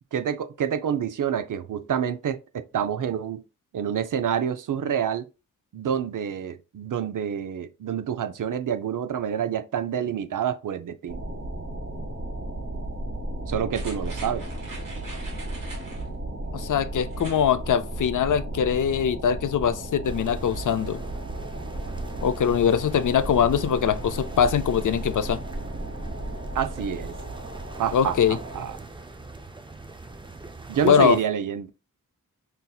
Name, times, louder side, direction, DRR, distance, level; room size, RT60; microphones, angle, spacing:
voice 1, 0.1-3.4 3.7-5.3 5.7-11.2 13.5-14.5 26.5-27.1 27.8-28.8 30.7-31.7, right 8 dB, 75° right, 0.5 m, -27 dB
sound 1, 11.1-28.7, right 1 dB, 40° right, 1.2 m, -34 dB
sound 2, 13.7-16.1 17.1-17.5 17.9-18.0, right 2 dB, 90° right, 1.6 m, -43 dB
voice 2, 16.5-21.0 22.2-25.4 27.9-28.4 30.9-31.2, left 8 dB, 70° left, 0.4 m, -22 dB
sound 3, 20.0-31.2, right 2 dB, 15° right, 0.5 m, -43 dB
5.6 x 2.7 x 2.3 m
wide cardioid pair, 70°, 32 cm